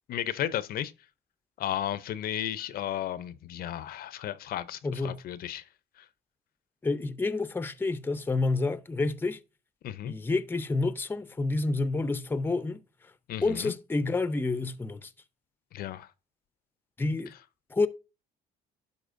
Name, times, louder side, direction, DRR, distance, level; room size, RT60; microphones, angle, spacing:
voice 1, 0.1-0.9 1.6-5.7 6.0-6.1 9.8-10.1 13.3-13.7 15.7-16.1, left 11 dB, 65° left, 0.6 m, -34 dB
voice 2, 4.8-5.2 6.8-9.4 10.0-12.8 13.4-15.1 17.0-17.3 17.7-17.9, left 3 dB, 10° left, 0.6 m, -29 dB
11.5 x 4.2 x 2.5 m
cardioid pair, 110°, 17 cm